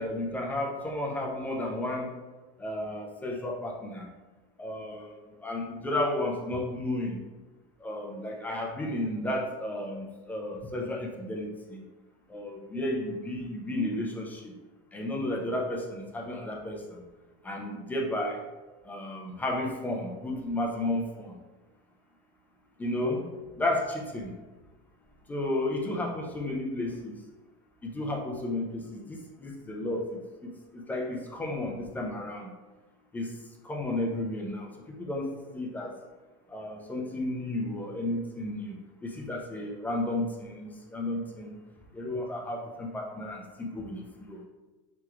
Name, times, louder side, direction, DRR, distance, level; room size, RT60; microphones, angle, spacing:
voice 1, 0.0-2.1 2.6-4.1 4.6-7.2 7.8-11.8 12.3-14.5 14.9-17.0 17.4-18.4 18.9-21.4 22.8-23.2 23.6-24.3 25.3-27.1 27.8-32.5 33.1-33.3 33.6-35.9 36.5-38.8 39.0-41.6 41.9-44.4, left 1 dB, 10° left, -1 dB, 0.3 m, -33 dB
3.3 x 2.9 x 2.3 m, 1.2 s
supercardioid pair, 145°, 17 cm